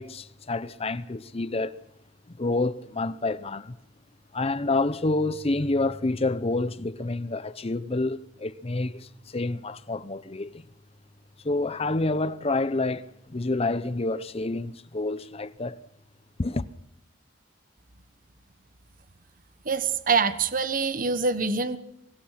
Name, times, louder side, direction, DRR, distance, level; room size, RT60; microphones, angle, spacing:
voice 1, 0.0-1.7 2.3-3.8 4.3-10.7 11.4-15.8 16.4-16.7, left 2 dB, 30° left, 0.7 m, -28 dB
voice 2, 19.6-21.8, right 4 dB, 45° right, 1.2 m, -25 dB
24.5 x 20.5 x 5.8 m
head